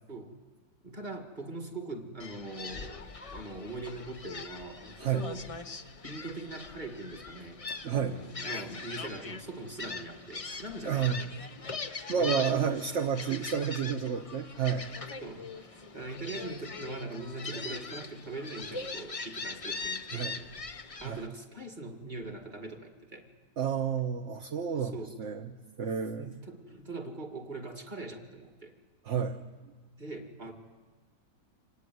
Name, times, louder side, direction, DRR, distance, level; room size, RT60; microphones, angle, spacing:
voice 1, 0.8-5.5 6.0-11.2 11.6-11.7 12.2-13.0 13.3-13.4 15.2-20.5 21.0-23.3 24.8-25.2 26.1-28.7 30.0-30.5, right 2 dB, 25° right, 4 dB, 2.2 m, -42 dB
Gull seagull, 2.2-21.3, left 4 dB, 30° left, 0.6 m, -41 dB
voice 2, 7.8-8.1 10.8-11.2 12.1-14.9 20.1-20.3 21.0-21.2 23.6-25.5 25.8-26.3 29.0-29.4, right 7 dB, 50° right, 5 dB, 1.1 m, -30 dB
26.0 x 18.0 x 9.5 m, 1.4 s
omnidirectional pair, 1.9 m